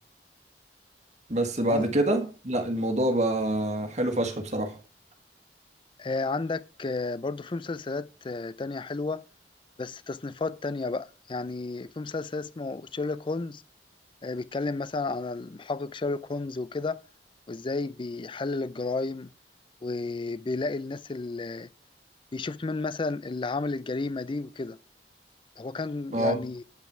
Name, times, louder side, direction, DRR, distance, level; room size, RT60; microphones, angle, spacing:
voice 1, 1.3-4.8 26.1-26.4, right 1 dB, 40° right, 1.6 m, -26 dB
voice 2, 6.0-9.2 9.8-13.6 14.2-17.0 17.5-19.3 19.8-21.7 22.3-24.8 25.6-26.6, left 3 dB, 30° left, 0.4 m, -32 dB
9.1 x 5.7 x 5.9 m
head